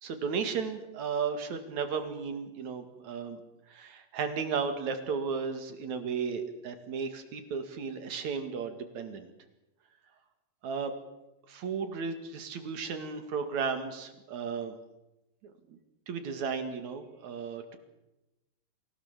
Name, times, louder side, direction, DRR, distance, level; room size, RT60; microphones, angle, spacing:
voice 1, 0.0-3.4 3.7-9.3 10.6-10.9 11.5-14.8 15.4-15.8 16.1-17.8, right 5 dB, 70° right, 8 dB, 3.5 m, -34 dB
27.0 x 16.5 x 7.4 m, 0.98 s
omnidirectional pair, 3.4 m